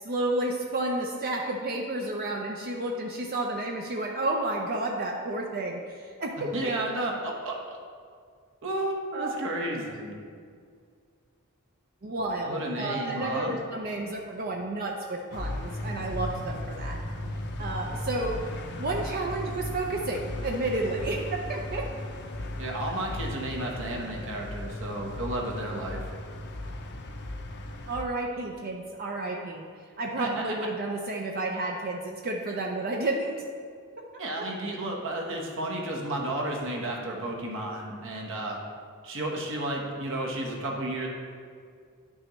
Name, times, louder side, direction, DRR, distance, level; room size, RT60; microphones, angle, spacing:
voice 1, 0.0-6.7 9.1-9.3 12.0-17.0 17.6-18.4 18.8-21.9 27.9-29.6 30.0-33.3 34.4-34.5, right 2 dB, 45° right, 0 dB, 0.6 m, -31 dB
voice 2, 6.5-7.8 8.6-10.1 12.4-13.5 22.6-26.1 30.2-30.4 34.2-38.6 39.0-41.1, right 1 dB, 60° right, 0 dB, 1.2 m, -32 dB
sound 1, 15.3-28.0, left 1 dB, 50° left, 0.6 m, -36 dB
10.0 x 6.2 x 3.1 m, 2.1 s
head